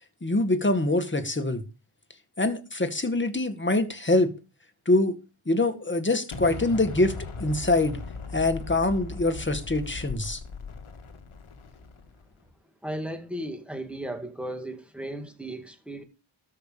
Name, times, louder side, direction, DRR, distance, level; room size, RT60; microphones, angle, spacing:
voice 1, 0.2-1.6 2.4-4.3 4.9-5.2 5.5-7.1 7.4-8.0 8.3-10.4, left 2 dB, 25° left, 2.0 m, -24 dB
Explosion, 6.3-12.3, left 4 dB, 90° left, 1.9 m, -38 dB
voice 2, 12.8-16.0, right 1 dB, ahead, 2.3 m, -35 dB
13.0 x 5.8 x 7.0 m
wide cardioid pair, 85°, 48 cm